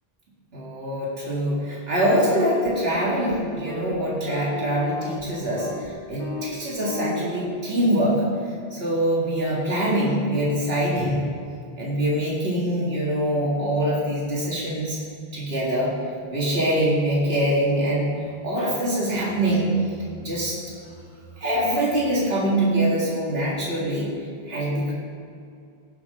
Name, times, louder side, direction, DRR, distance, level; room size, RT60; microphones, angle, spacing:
voice 1, 0.5-8.2 8.7-11.2 11.8-15.0 15.3-15.9 16.3-18.1 18.4-19.7 20.2-20.6 21.4-24.1 24.5-24.9, right 1 dB, 75° right, -6 dB, 2.4 m, -24 dB
sound 1, 2.4-2.7 3.0-3.3 3.7-4.0 4.3-5.2 5.6-5.9 6.2-6.5 6.8-7.5, left 1 dB, 45° left, 1.7 m, -34 dB
18.0 x 6.3 x 3.8 m, 2.4 s
omnidirectional pair, 1.0 m